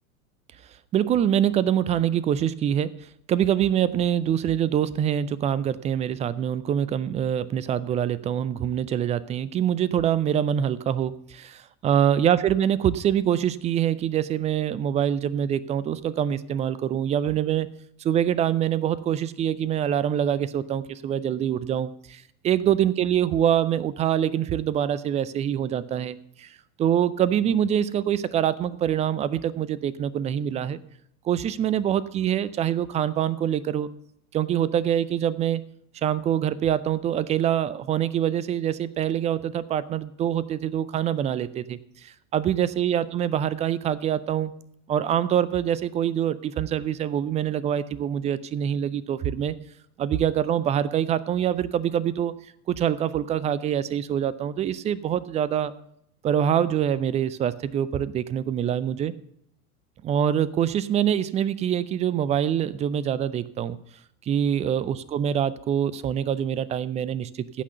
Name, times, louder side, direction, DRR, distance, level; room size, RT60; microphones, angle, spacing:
voice 1, 0.9-17.7 18.0-30.8 31.2-33.9 34.3-35.6 36.0-44.5 44.9-49.6 50.0-52.3 52.7-55.7 56.2-59.1 60.0-63.8 64.3-67.6, right 10 dB, 15° right, 19 dB, 0.4 m, -25 dB
15.5 x 5.9 x 6.8 m, 0.72 s
figure-of-eight pair, 90°, 45 cm